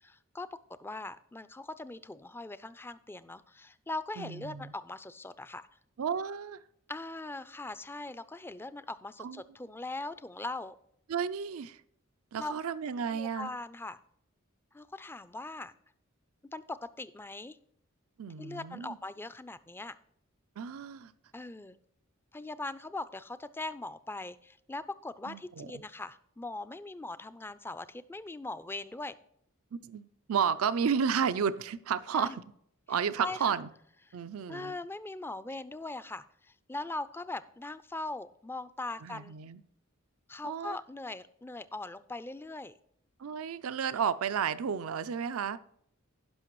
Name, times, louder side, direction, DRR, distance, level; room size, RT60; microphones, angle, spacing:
voice 1, 0.0-5.7 6.9-10.8 12.4-12.5 13.1-14.0 14.7-15.7 16.5-17.6 18.4-20.0 21.3-21.8 22.3-29.1 32.1-32.4 33.2-33.6 34.1-34.2 34.5-39.4 40.3-42.8, left 2 dB, 10° left, 0.4 m, -40 dB
voice 2, 4.2-4.7 6.0-6.6 9.2-9.4 11.1-11.8 12.3-13.5 18.2-19.0 20.6-21.1 25.3-25.8 29.8-32.4 32.9-33.7 34.1-34.7 39.0-39.6 40.4-40.8 43.2-45.6, right 7 dB, 80° right, 0.5 m, -32 dB
16.5 x 5.8 x 3.1 m
head